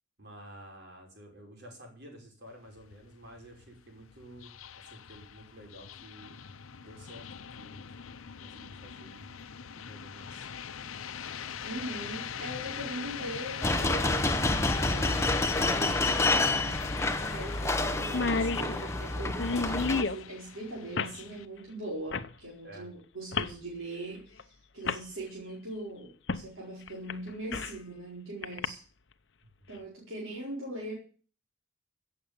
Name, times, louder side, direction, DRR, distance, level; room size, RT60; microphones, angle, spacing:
voice 1, 0.2-6.4 6.8-7.8 8.4-9.4 9.8-10.5 22.6-22.9 29.4-29.5, equal, 55° right, 1 dB, 5.7 m, -51 dB
sound 1, 2.5-21.5, left 8 dB, 90° left, 0.7 m, -41 dB
voice 2, 11.6-16.3 17.2-28.8 29.7-30.9, right 1 dB, 80° right, -4 dB, 4.6 m, -41 dB
sound 2, 13.6-20.0, left 2 dB, 15° left, 0.9 m, -28 dB
sound 3, 16.2-16.3 16.6-16.7 17.3-17.5 17.8-17.9 18.0-20.2 21.0-21.2 22.1-22.3 23.3-23.6 24.4-24.5 24.8-25.0 26.3-26.5 26.9-27.8 28.4-28.7, left 4 dB, 60° left, 0.8 m, -31 dB
16.0 x 7.7 x 7.2 m, 0.41 s
head